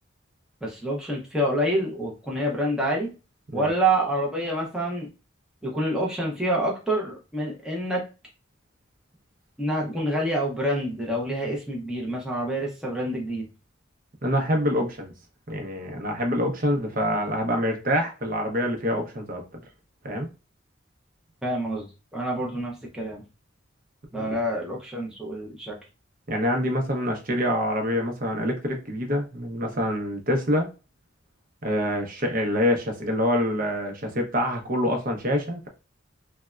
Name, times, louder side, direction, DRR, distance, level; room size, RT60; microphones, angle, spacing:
voice 1, 0.6-3.1 3.5-5.1 5.6-8.0 9.6-13.5 21.4-21.9 22.1-23.2 24.1-25.8, right 1 dB, 5° right, -2 dB, 0.6 m, -27 dB
voice 2, 14.2-15.1 15.5-19.4 20.0-20.3 24.1-24.3 26.3-30.7 31.6-35.7, equal, 45° right, 3 dB, 0.7 m, -26 dB
3.3 x 2.1 x 2.3 m, 0.31 s
head